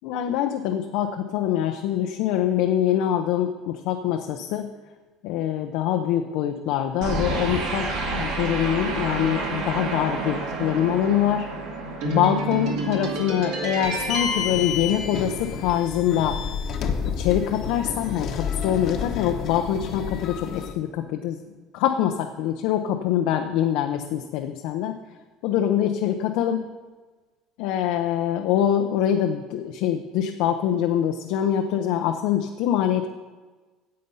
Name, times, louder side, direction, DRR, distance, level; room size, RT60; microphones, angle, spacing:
voice 1, 0.0-4.7 5.2-11.5 12.0-16.4 17.2-21.4 21.7-25.0 25.4-26.6 27.6-33.1, left 10 dB, 75° left, 4 dB, 0.6 m, -24 dB
sound 1, 7.0-15.6, right 3 dB, 75° right, 2.2 m, -29 dB
sound 2, 13.8-20.7, left 7 dB, 50° left, 1.1 m, -30 dB
9.6 x 7.6 x 5.4 m, 1.3 s
cardioid pair, 115°, 0 cm